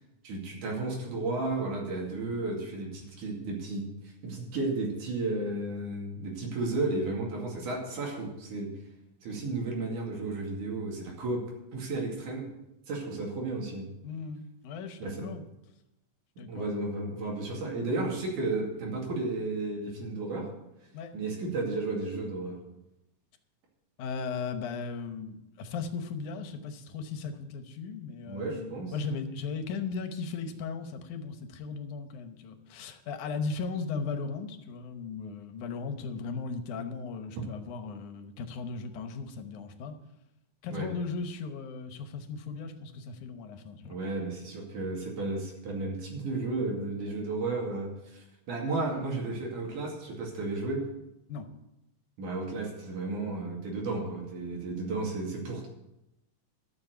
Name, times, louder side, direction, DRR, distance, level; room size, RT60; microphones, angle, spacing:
voice 1, 0.2-3.9 4.2-8.7 9.2-11.4 11.7-12.5 12.9-13.9 15.0-15.3 16.4-20.5 21.1-22.6 28.3-28.9 40.7-40.9 43.9-50.8 52.2-55.7, right 2 dB, 90° right, -1 dB, 3.9 m, -33 dB
voice 2, 14.0-15.5 16.4-16.7 20.9-21.2 24.0-40.0 40.6-44.0 51.3-51.5, left 4 dB, 80° left, 8 dB, 2.5 m, -37 dB
12.5 x 7.2 x 6.9 m, 0.91 s
omnidirectional pair, 3.4 m